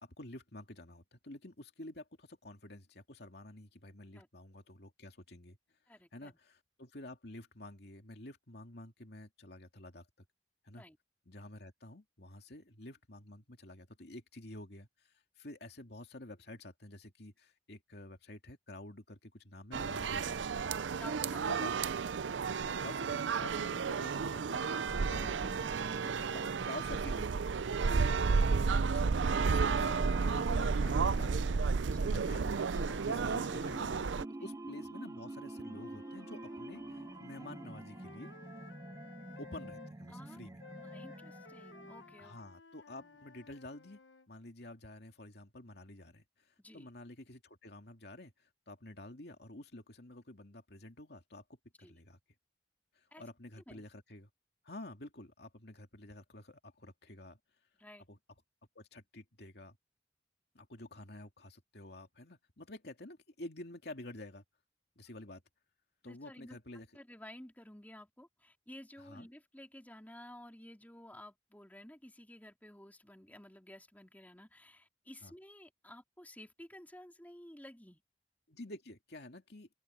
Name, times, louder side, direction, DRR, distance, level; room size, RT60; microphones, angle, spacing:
voice 1, 0.0-5.6 6.1-10.1 10.6-10.8 11.3-20.6 21.5-21.9 22.6-25.6 26.0-27.5 28.8-31.6 32.0-38.3 39.4-40.6 42.2-44.0 44.3-51.4 51.9-52.2 52.9-54.3 54.6-57.4 58.1-58.2 58.7-59.8 60.5-64.4 65.0-65.4 66.0-66.9 69.0-69.3 75.2-75.3 78.5-79.7, left 1 dB, 60° left, 2.7 m, -50 dB
voice 2, 5.9-6.4 10.8-11.0 21.0-21.7 24.9-25.3 27.9-29.0 31.9-32.1 34.4-34.5 40.1-40.4 40.8-42.4 43.0-43.2 46.6-46.9 51.8-52.0 53.1-53.2 53.7-53.8 57.8-58.1 66.1-66.6 66.9-78.0, left 1 dB, 10° left, 3.4 m, -53 dB
sound 1, 19.7-34.2, right 5 dB, 85° right, 0.5 m, -32 dB
sound 2, 24.4-42.4, right 2 dB, 20° right, 0.4 m, -48 dB
Wind instrument woodwind instrument, 35.5-39.9 40.6-44.3, left 4 dB, 85° left, 1.1 m, -55 dB
open air
head